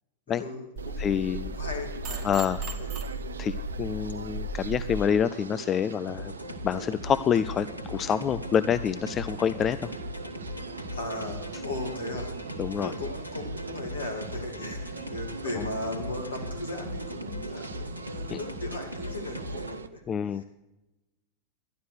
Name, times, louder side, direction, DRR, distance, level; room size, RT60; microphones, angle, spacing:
voice 1, 0.3-2.3 2.7-2.9 10.9-12.3 12.7-20.0 20.3-20.4, left 1 dB, 75° left, 3 dB, 2.4 m, -37 dB
sound 1, 0.8-5.0, right 1 dB, 35° right, 1.5 m, -35 dB
sound 2, 0.8-19.9, right 6 dB, 70° right, 0.5 m, -42 dB
voice 2, 1.0-1.6 2.2-2.6 3.4-6.3 6.6-9.9 12.6-12.9 15.6-15.7 18.3-18.4 20.1-20.4, left 8 dB, 25° left, 14 dB, 0.4 m, -27 dB
sound 3, 6.1-19.8, left 1 dB, 85° right, 1.2 m, -39 dB
12.5 x 11.0 x 6.3 m, 0.99 s
figure-of-eight pair, 90°, 0 cm